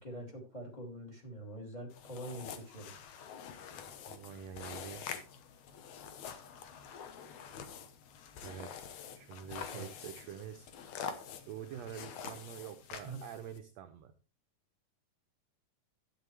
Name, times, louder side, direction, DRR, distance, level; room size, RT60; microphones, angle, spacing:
voice 1, 0.0-2.9 9.7-10.1 13.0-13.2, right 1 dB, 15° left, 2 dB, 2.1 m, -45 dB
sound 1, 1.9-13.6, left 7 dB, 70° left, 2.2 m, -46 dB
voice 2, 4.1-5.0 8.4-8.8 9.1-10.7 11.3-14.1, right 9 dB, 75° right, 7 dB, 1.6 m, -46 dB
11.5 x 9.1 x 3.2 m, 0.32 s
omnidirectional pair, 3.7 m